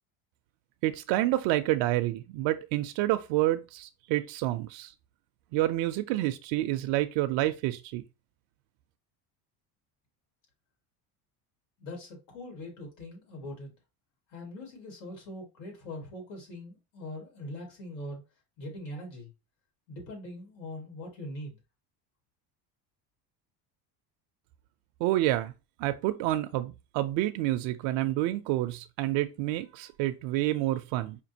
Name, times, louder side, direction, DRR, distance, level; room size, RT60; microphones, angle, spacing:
voice 1, 0.8-4.9 5.5-8.0 25.0-25.5 25.8-31.2, right 15 dB, 70° right, 0.5 m, -28 dB
voice 2, 11.8-13.7 14.3-18.2 18.6-19.3 19.9-21.6, left 1 dB, 90° left, 2.2 m, -42 dB
5.1 x 2.4 x 2.7 m
cardioid pair, 115°, 44 cm